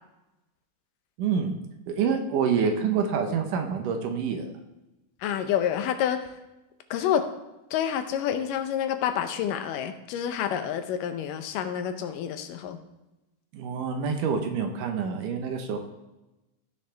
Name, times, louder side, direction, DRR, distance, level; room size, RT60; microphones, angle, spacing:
voice 1, 1.2-1.5 1.9-4.5 13.5-15.8, right 6 dB, 75° right, 4 dB, 2.6 m, -27 dB
voice 2, 5.2-6.3 6.9-7.3 7.7-12.8, left 9 dB, 80° left, 8 dB, 2.4 m, -28 dB
15.0 x 6.4 x 3.4 m, 0.99 s
omnidirectional pair, 3.8 m